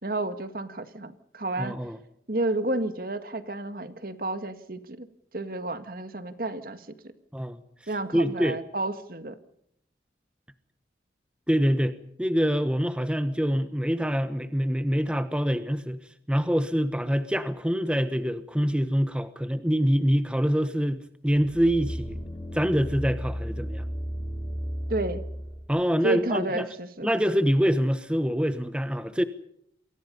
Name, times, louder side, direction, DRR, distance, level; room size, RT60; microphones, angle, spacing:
voice 1, 0.0-1.8 2.3-5.1 5.3-6.9 7.9-9.4 24.9-25.2 26.0-27.1, right 2 dB, 55° right, 1.9 m, -31 dB
voice 2, 1.6-2.0 7.3-7.6 8.1-8.6 11.5-16.0 16.3-22.2 22.5-23.8 25.7-26.7 27.0-29.2, equal, 5° right, 1.1 m, -25 dB
sound 1, 21.4-25.7 26.2-26.3, equal, 15° left, 6.4 m, -34 dB
28.5 x 23.0 x 5.5 m
head